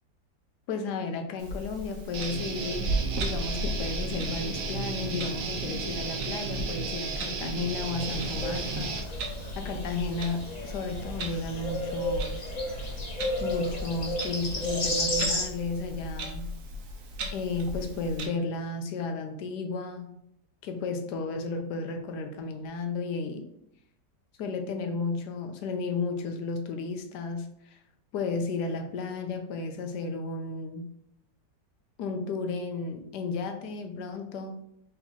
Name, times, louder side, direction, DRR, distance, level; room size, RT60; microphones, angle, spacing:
voice 1, 0.7-9.0 9.5-12.5 13.4-16.5 17.3-20.2 20.6-23.5 24.4-27.8 28.1-30.9 32.0-34.6, left 4 dB, 75° left, 5 dB, 1.1 m, -33 dB
Clock, 1.4-18.3, right 1 dB, 60° right, 0.9 m, -37 dB
Guitar, 2.1-9.0, right 5 dB, 85° right, 1.4 m, -34 dB
sound 1, 8.0-15.4, left 1 dB, 35° left, 0.7 m, -33 dB
3.8 x 2.8 x 4.3 m, 0.74 s
omnidirectional pair, 1.9 m